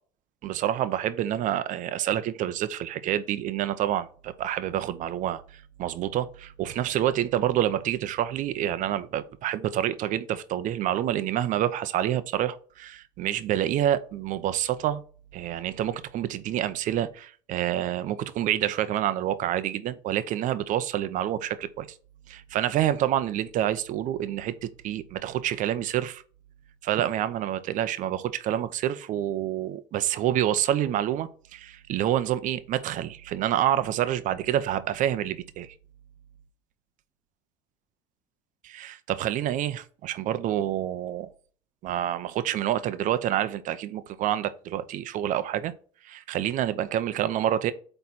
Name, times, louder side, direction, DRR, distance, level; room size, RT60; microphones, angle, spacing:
voice 1, 0.4-15.0 15.3-21.9 22.3-26.2 26.8-35.7 38.6-41.3 41.8-45.7 46.0-47.7, right 11 dB, 55° right, 0.8 m, -28 dB
8.6 x 3.4 x 4.1 m
supercardioid pair, 105°, 16 cm